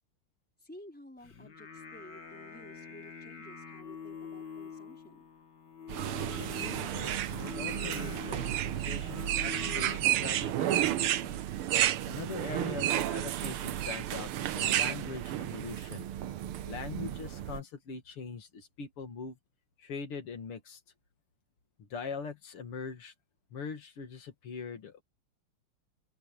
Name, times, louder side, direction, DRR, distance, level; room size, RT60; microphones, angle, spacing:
voice 1, 0.6-5.3, left 1 dB, 5° left, 5.1 m, -53 dB
Singing, 1.2-10.0, left 6 dB, 55° left, 2.6 m, -45 dB
sound 1, 5.9-17.6, right 12 dB, 80° right, 1.8 m, -35 dB
voice 2, 6.4-11.4 12.1-16.1 16.6-19.4 19.8-20.8 21.9-23.1 23.5-25.0, left 5 dB, 90° left, 3.2 m, -42 dB
sound 2, 6.5-14.9, right 12 dB, 65° right, 1.3 m, -32 dB
open air
omnidirectional pair, 2.4 m